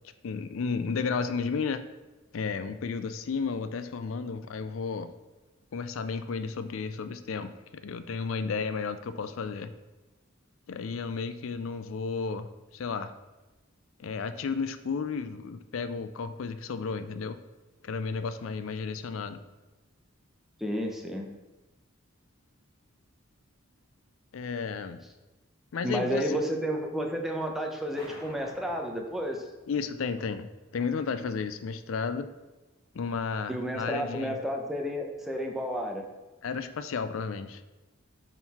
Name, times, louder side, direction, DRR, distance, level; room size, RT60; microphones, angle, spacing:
voice 1, 0.2-1.8 2.3-5.1 5.7-9.7 10.7-13.1 14.0-17.4 17.8-19.4 24.3-25.0 25.7-26.4 29.7-32.3 32.9-34.4 36.4-37.6, left 5 dB, 75° left, 11 dB, 0.4 m, -33 dB
voice 2, 20.6-21.4 25.8-29.4 33.5-36.0, equal, ahead, 1 dB, 0.7 m, -31 dB
sound 1, 28.0-30.4, equal, 20° left, 1.2 m, -50 dB
8.9 x 4.0 x 4.2 m, 1.1 s
head